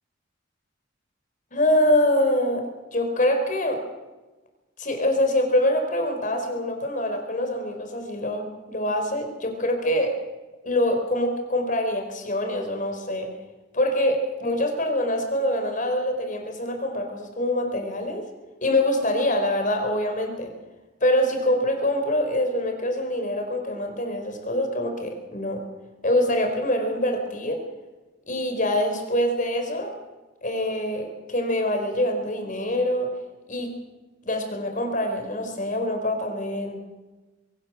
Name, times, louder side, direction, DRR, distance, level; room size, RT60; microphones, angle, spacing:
voice 1, 1.5-2.6 2.9-3.8 4.8-10.1 10.6-13.3 13.7-18.2 18.6-20.5 21.0-25.6 26.0-27.6 28.3-29.9 30.4-33.1 33.5-33.7 34.2-36.8, left 1 dB, 45° left, 4 dB, 4.7 m, -24 dB
23.0 x 17.5 x 7.6 m, 1.2 s
head